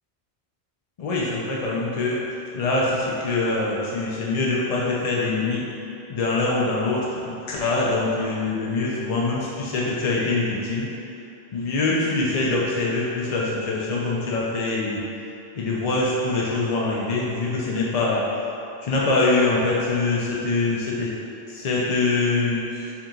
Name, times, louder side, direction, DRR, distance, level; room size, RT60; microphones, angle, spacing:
voice 1, 1.0-2.2 2.5-5.6 6.1-10.9 11.5-15.0 15.6-18.2 18.8-21.1 21.5-22.9, left 3 dB, 55° left, -5 dB, 0.4 m, -24 dB
3.5 x 2.8 x 3.7 m, 2.7 s
omnidirectional pair, 1.1 m